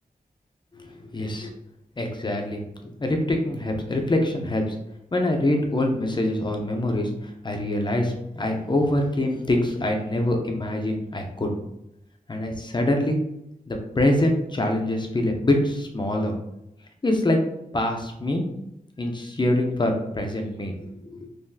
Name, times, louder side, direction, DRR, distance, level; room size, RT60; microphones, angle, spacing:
voice 1, 1.1-1.5 2.0-2.6 3.0-4.7 5.1-11.6 12.3-13.2 13.7-16.3 17.0-17.4 17.7-18.4 19.0-20.7 21.0-21.2, left 1 dB, 30° left, 3 dB, 0.6 m, -24 dB
3.9 x 2.6 x 2.7 m, 0.84 s
wide cardioid pair, 100°, 15 cm